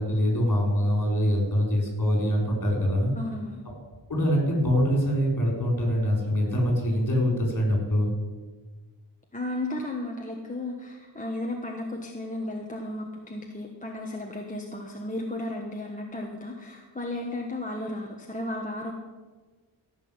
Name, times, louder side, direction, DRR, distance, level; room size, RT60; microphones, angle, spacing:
voice 1, 0.0-3.1 4.1-8.1, equal, 45° left, -1 dB, 4.6 m, -24 dB
voice 2, 3.2-3.6 9.3-18.9, left 1 dB, 15° left, 0 dB, 1.2 m, -34 dB
15.0 x 6.1 x 8.7 m, 1.3 s
wide cardioid pair, 140°, 46 cm